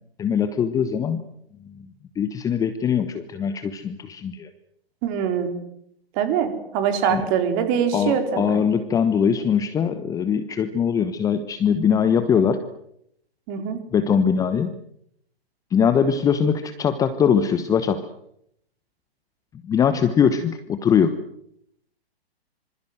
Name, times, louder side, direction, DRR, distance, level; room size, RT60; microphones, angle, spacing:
voice 1, 0.2-1.2 2.2-4.5 7.1-7.2 7.9-12.6 13.9-14.7 15.7-18.0 19.6-21.1, left 7 dB, 10° left, 11 dB, 1.1 m, -21 dB
voice 2, 5.0-5.6 6.1-8.7 13.5-13.8, right 8 dB, 30° right, 7 dB, 4.5 m, -23 dB
26.0 x 26.0 x 7.8 m, 0.73 s
figure-of-eight pair, 125°, 31 cm